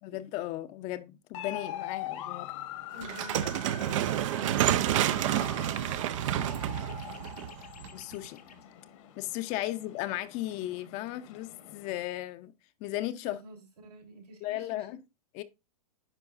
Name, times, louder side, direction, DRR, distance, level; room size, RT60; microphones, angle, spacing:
voice 1, 0.0-2.5 7.9-8.4 9.2-12.5 12.8-13.4 14.4-15.0 15.3-15.4, left 15 dB, 35° left, 0.6 m, -35 dB
sound 1, 1.3-12.0, left 11 dB, 55° left, 1.2 m, -43 dB
voice 2, 2.9-7.4 13.2-14.9, right 1 dB, 90° right, 3.4 m, -50 dB
sound 2, 3.0-8.1, right 12 dB, 55° right, 0.5 m, -29 dB
sound 3, 6.2-8.6, left 7 dB, 90° left, 1.1 m, -55 dB
9.9 x 5.2 x 2.5 m
hypercardioid pair, 120°, 19 cm